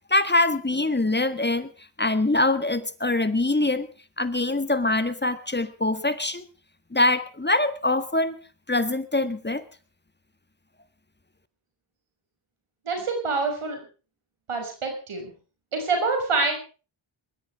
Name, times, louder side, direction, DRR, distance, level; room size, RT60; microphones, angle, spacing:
voice 1, 0.1-1.7 2.0-6.5 6.9-8.4 8.7-9.6, left 2 dB, 20° left, 12 dB, 1.6 m, -24 dB
voice 2, 12.8-13.9 14.5-15.3 15.7-16.6, right 3 dB, 85° right, 4 dB, 6.3 m, -26 dB
21.0 x 13.5 x 4.8 m, 0.36 s
cardioid pair, 45°, 50 cm